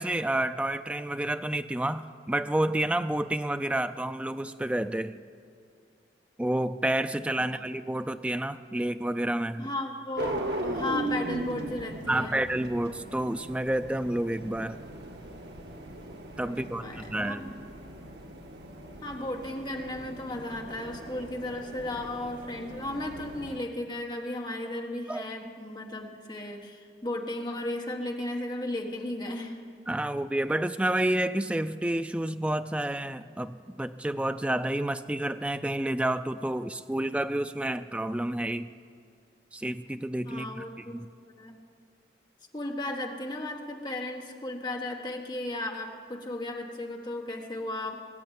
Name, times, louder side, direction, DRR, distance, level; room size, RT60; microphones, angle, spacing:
voice 1, 0.0-5.2 6.4-9.7 12.1-14.8 16.4-17.4 25.1-25.2 29.9-38.7 39.5-41.1, right 1 dB, 5° right, 10 dB, 0.3 m, -29 dB
voice 2, 9.6-12.4 16.4-17.5 19.0-29.6 40.2-41.0 41.4-41.6 42.5-48.0, left 1 dB, 25° left, 1 dB, 1.4 m, -35 dB
sound 1, 10.2-23.6, right 1 dB, 75° right, 1.4 m, -38 dB
20.5 x 7.8 x 9.0 m, 2.3 s
head